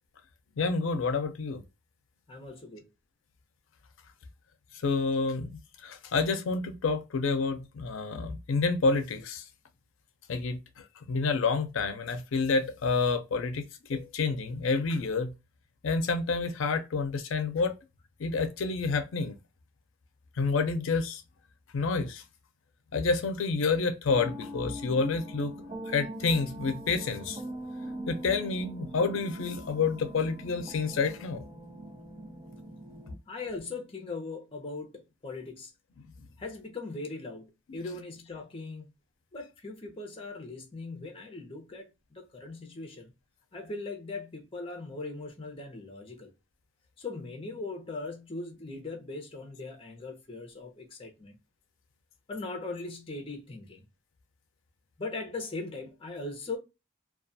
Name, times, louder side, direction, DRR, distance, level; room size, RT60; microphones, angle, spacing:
voice 1, 0.6-1.6 4.8-9.5 10.3-15.3 15.8-17.7 18.2-19.3 20.4-21.2 21.7-22.2 22.9-25.5 25.9-27.4 28.1-31.4 37.7-37.8, left 4 dB, 85° left, 0.5 m, -29 dB
voice 2, 2.3-2.9 33.3-35.7 36.4-38.9 39.3-41.9 42.1-43.1 43.5-46.3 47.0-51.3 52.3-53.8 55.0-56.6, left 3 dB, 30° left, 0.7 m, -39 dB
sound 1, 24.1-33.1, right 1 dB, 25° right, 0.5 m, -42 dB
2.3 x 2.3 x 2.5 m
head